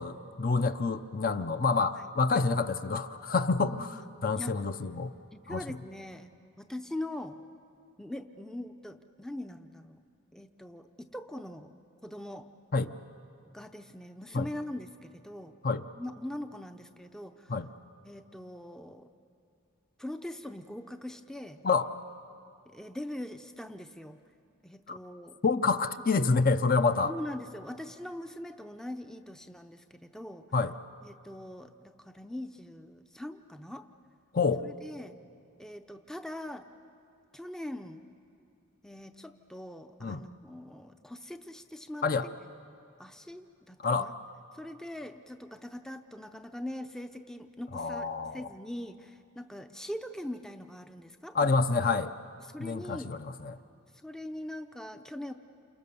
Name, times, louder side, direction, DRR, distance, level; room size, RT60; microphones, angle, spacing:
voice 1, 0.0-5.1 5.5-5.6 12.7-12.9 14.3-14.5 15.6-15.8 17.5-17.7 21.6-21.9 24.9-25.0 25.4-27.1 30.5-30.7 34.3-34.6 40.0-40.2 42.0-42.3 43.8-44.1 47.7-48.5 51.3-52.1 52.6-53.6, left 4 dB, 40° left, 9 dB, 0.7 m, -28 dB
voice 2, 3.7-4.1 4.4-4.6 5.3-7.4 8.0-10.0 10.3-11.7 12.0-12.5 13.5-15.6 16.0-17.5 18.0-19.1 20.0-21.6 22.7-24.2 24.6-25.4 27.0-30.5 31.0-33.9 34.6-35.2 35.6-36.7 37.3-38.1 38.8-42.1 43.0-44.1 44.5-51.9 52.4-53.1 53.9-55.3, left 1 dB, 5° left, 7 dB, 0.6 m, -42 dB
29.0 x 28.5 x 6.9 m, 2.5 s
head